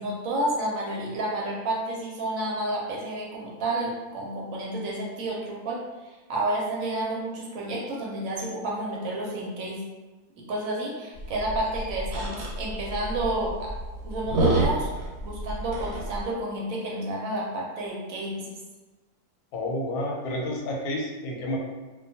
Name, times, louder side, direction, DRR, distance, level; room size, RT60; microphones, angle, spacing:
voice 1, 0.0-9.8 10.5-13.7 14.0-14.9 15.2-18.5, right 1 dB, 70° right, -3 dB, 1.0 m, -30 dB
sound 1, 11.1-16.2, right 2 dB, 90° right, 1.2 m, -29 dB
voice 2, 19.5-21.6, left 1 dB, 90° left, -1 dB, 1.1 m, -30 dB
2.4 x 2.2 x 2.7 m, 1.2 s
omnidirectional pair, 1.5 m